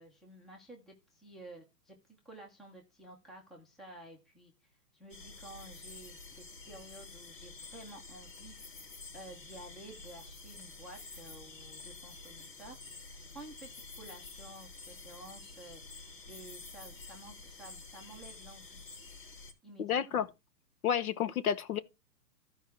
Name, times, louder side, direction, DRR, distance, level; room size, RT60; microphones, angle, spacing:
voice 1, 0.0-2.0 2.2-4.5 4.9-8.6 9.1-12.8 13.2-18.9 19.6-20.3, right 1 dB, ahead, 0.6 m, -52 dB
sound 1, 5.1-19.5, left 3 dB, 85° left, 3.4 m, -49 dB
voice 2, 19.8-20.3 20.8-21.8, left 9 dB, 60° left, 1.2 m, -30 dB
13.5 x 4.8 x 4.4 m
hypercardioid pair, 140°, 49 cm